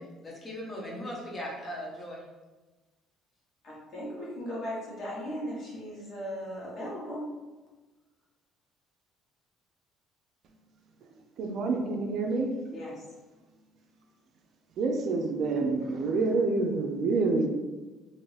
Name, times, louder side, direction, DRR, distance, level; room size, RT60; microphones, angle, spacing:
voice 1, 0.2-2.2, equal, 25° left, 0.9 m, -38 dB
voice 2, 3.6-7.3 12.7-13.0, equal, 55° left, 1.2 m, -37 dB
voice 3, 11.4-12.5 14.8-17.5, right 3 dB, 60° right, 0.5 m, -27 dB
2.9 x 2.6 x 3.2 m
cardioid pair, 100°, 0 cm